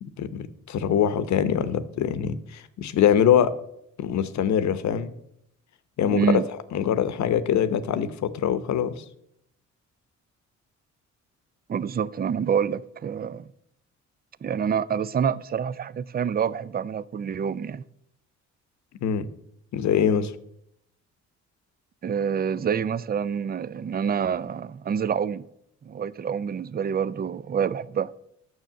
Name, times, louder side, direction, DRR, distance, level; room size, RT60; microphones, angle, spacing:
voice 1, 0.0-3.5 4.0-5.1 6.0-6.4 6.7-9.0 19.0-19.3 19.7-20.3, left 9 dB, 65° left, 0.9 m, -23 dB
voice 2, 6.1-6.4 11.7-13.5 14.4-17.8 22.0-25.5 25.8-28.2, right 7 dB, 30° right, 0.5 m, -27 dB
9.3 x 6.5 x 7.4 m
cardioid pair, 90°, 30 cm